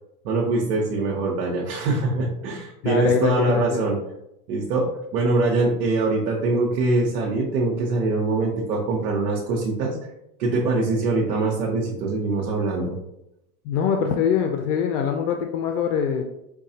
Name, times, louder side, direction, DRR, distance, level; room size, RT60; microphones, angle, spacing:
voice 1, 0.2-4.0 4.5-10.0 10.4-13.0, right 3 dB, 75° right, -2 dB, 0.8 m, -23 dB
voice 2, 2.8-3.8 13.7-16.2, left 7 dB, 75° left, 4 dB, 0.6 m, -23 dB
4.7 x 2.3 x 2.7 m, 0.84 s
supercardioid pair, 115°, 47 cm